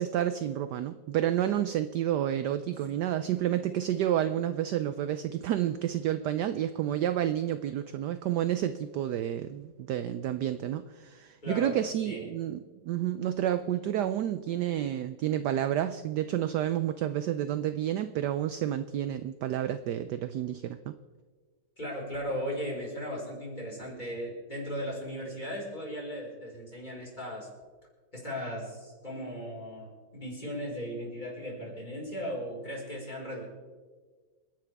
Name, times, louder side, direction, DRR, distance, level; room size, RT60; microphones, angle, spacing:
voice 1, 0.0-20.9, right 11 dB, 70° right, 11 dB, 1.0 m, -30 dB
voice 2, 11.4-12.3 21.8-27.5 28.1-33.4, equal, 20° left, -3 dB, 4.9 m, -37 dB
28.0 x 11.0 x 3.5 m, 1.5 s
omnidirectional pair, 2.2 m